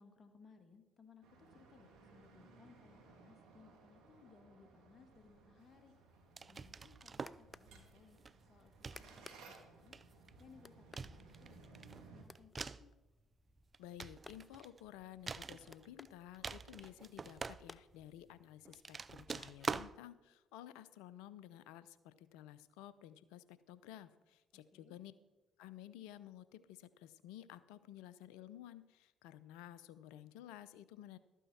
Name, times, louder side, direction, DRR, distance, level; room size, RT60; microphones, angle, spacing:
voice 1, 0.0-5.9 6.5-8.2 8.5-10.0 10.4-12.9 24.5-25.0, left 5 dB, 45° left, 7 dB, 1.6 m, -64 dB
sound 1, 1.2-12.2, right 4 dB, 75° right, 1.7 m, -61 dB
sound 2, 6.4-7.5 8.2-8.4 8.8-9.6 9.9-10.4 11.0-12.9 13.6-14.8 15.3-16.1 16.3-18.0 18.7-19.9, right 5 dB, 40° right, 0.4 m, -45 dB
sound 3, 6.5-18.5, left 3 dB, 25° left, 0.5 m, -61 dB
voice 2, 13.8-25.1 25.6-31.2, left 12 dB, 80° left, 16 dB, 0.5 m, -54 dB
12.5 x 9.2 x 4.2 m, 1.1 s
hypercardioid pair, 55°, 0 cm